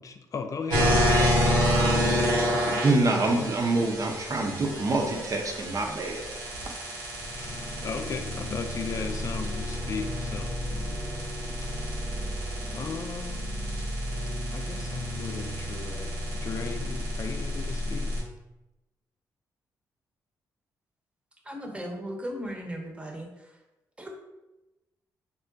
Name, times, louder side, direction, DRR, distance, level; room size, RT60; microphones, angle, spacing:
voice 1, 0.0-3.6 7.3-11.1 12.7-13.5 14.5-18.1, left 5 dB, 40° left, 0.4 m, -37 dB
sound 1, 0.7-18.2, equal, 75° right, 0.9 m, -29 dB
voice 2, 2.8-6.2 6.7-6.8, right 2 dB, 40° right, 0.6 m, -26 dB
voice 3, 21.4-23.3 24.0-24.1, equal, 15° right, 0.8 m, -36 dB
3.7 x 2.1 x 2.5 m
hypercardioid pair, 40°, 9 cm